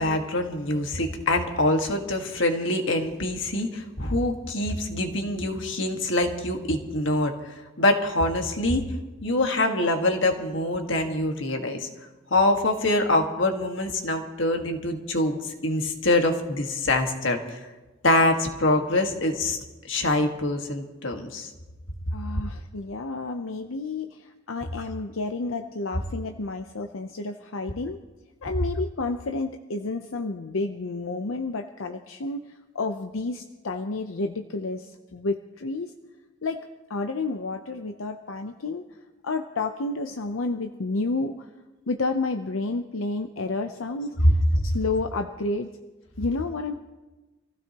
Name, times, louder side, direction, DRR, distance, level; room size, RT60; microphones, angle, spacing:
voice 1, 0.0-8.8 9.2-11.9 12.3-17.6 18.0-19.6 19.9-21.5, left 1 dB, 65° left, 4 dB, 1.7 m, -25 dB
voice 2, 22.1-28.0 28.4-35.9 36.4-36.6 36.9-39.0 39.2-41.5 41.9-45.7 46.2-46.7, left 3 dB, 90° left, 5 dB, 0.7 m, -30 dB
26.0 x 15.5 x 3.0 m, 1.1 s
head